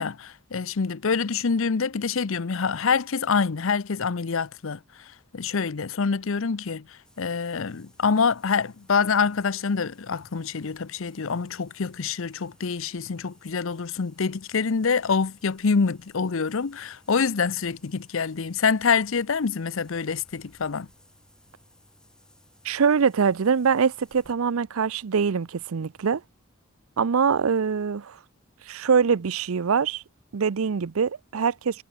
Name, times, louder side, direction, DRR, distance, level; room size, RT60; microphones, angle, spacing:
voice 1, 0.0-4.8 5.3-6.8 7.2-20.9, left 5 dB, 65° left, 0.6 m, -26 dB
sound 1, 7.0-24.3, left 1 dB, 5° left, 3.7 m, -60 dB
voice 2, 22.6-26.2 27.0-28.2 28.7-30.0 30.3-31.8, right 6 dB, 75° right, 0.5 m, -23 dB
head